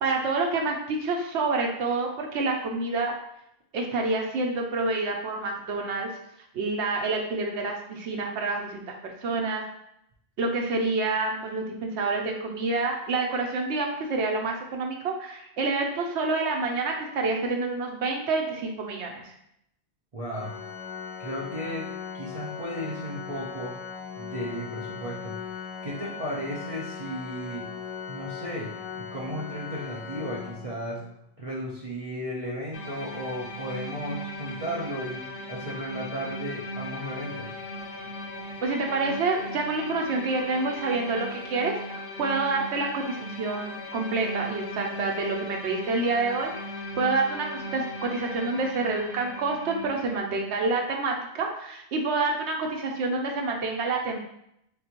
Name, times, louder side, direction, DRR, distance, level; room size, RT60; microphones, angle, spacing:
voice 1, 0.0-3.1 3.7-6.1 6.5-9.6 10.4-19.3 38.6-46.5 47.0-47.5 47.7-54.2, right 3 dB, 85° right, 1 dB, 0.9 m, -28 dB
voice 2, 20.1-20.5 21.2-21.9 22.1-23.8 24.1-27.7 28.1-31.0 31.4-35.2 35.5-37.5, equal, 35° right, -6 dB, 0.7 m, -35 dB
Organ, 20.3-31.2, left 7 dB, 50° left, 0.4 m, -39 dB
sound 1, 32.7-50.2, left 1 dB, 80° left, 0.8 m, -38 dB
3.8 x 3.6 x 2.9 m, 0.76 s
omnidirectional pair, 1.1 m